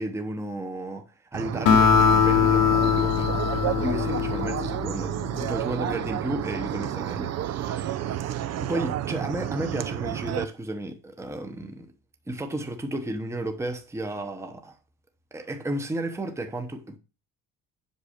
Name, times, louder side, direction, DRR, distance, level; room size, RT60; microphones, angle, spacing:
voice 1, 0.0-3.3 3.6-8.3 8.6-11.9 12.3-14.8 15.3-17.0, right 1 dB, 10° right, 1.0 m, -33 dB
sound 1, 1.3-10.4, right 11 dB, 50° right, 0.6 m, -31 dB
Acoustic guitar, 1.7-5.2, left 7 dB, 70° left, 1.2 m, -21 dB
8.1 x 6.2 x 5.0 m
cardioid pair, 150°, 34 cm